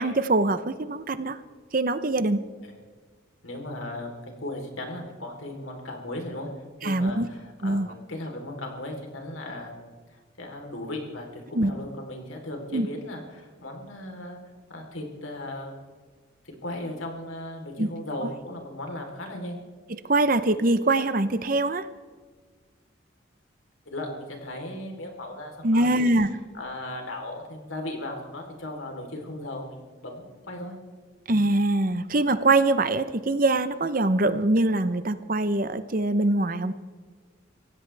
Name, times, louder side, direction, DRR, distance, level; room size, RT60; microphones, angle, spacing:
voice 1, 0.0-1.4 1.7-2.4 6.8-7.3 7.6-7.9 11.5-11.7 12.7-12.9 17.8-17.9 19.9-21.9 25.6-26.3 31.3-36.7, right 2 dB, 45° right, 12 dB, 0.8 m, -23 dB
voice 2, 3.4-6.5 6.8-9.7 10.1-14.4 14.7-15.8 16.6-19.6 23.9-26.1 26.5-30.7, left 1 dB, 85° left, 2 dB, 3.7 m, -37 dB
25.0 x 16.0 x 3.4 m, 1.5 s
head